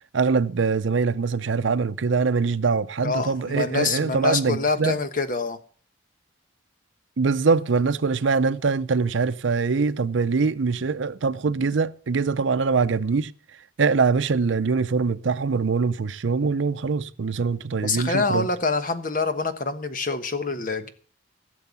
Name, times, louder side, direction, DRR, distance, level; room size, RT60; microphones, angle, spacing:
voice 1, 0.1-4.9 7.2-13.3 13.8-18.5, right 4 dB, 80° right, 0.6 m, -23 dB
voice 2, 3.0-5.6 17.8-20.9, left 4 dB, 45° left, 1.2 m, -26 dB
16.0 x 7.0 x 7.0 m
head